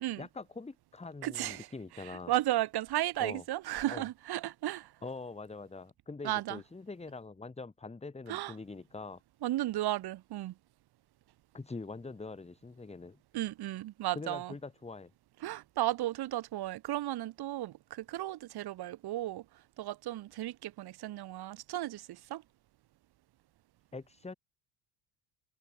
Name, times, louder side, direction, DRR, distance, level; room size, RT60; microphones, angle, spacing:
voice 1, 0.2-2.3 3.2-3.4 3.9-4.1 5.0-9.2 11.5-13.2 14.1-15.1 23.9-24.3, left 3 dB, 15° left, 2.1 m, -44 dB
voice 2, 1.2-1.7 2.0-4.9 6.2-6.6 8.3-8.5 9.4-10.5 13.3-14.5 15.4-19.4 19.8-22.4, right 15 dB, 55° right, 1.2 m, -34 dB
cardioid pair, 110°, 47 cm